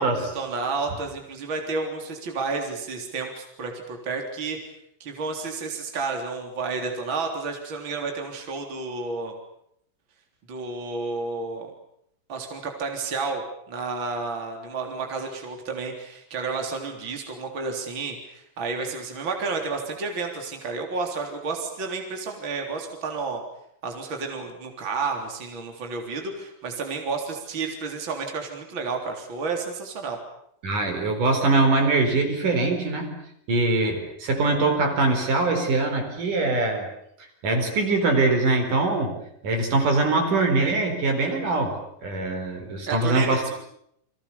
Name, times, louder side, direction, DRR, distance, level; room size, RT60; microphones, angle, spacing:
voice 1, 0.0-4.6 5.0-9.4 10.5-11.7 12.3-13.4 13.7-23.4 23.8-30.2 42.9-43.5, right 4 dB, 35° right, 3 dB, 4.1 m, -31 dB
voice 2, 30.6-33.1 33.5-36.9 37.4-39.2 39.4-43.4, right 3 dB, 65° right, 5 dB, 5.9 m, -23 dB
30.0 x 24.0 x 7.0 m, 0.72 s
omnidirectional pair, 4.1 m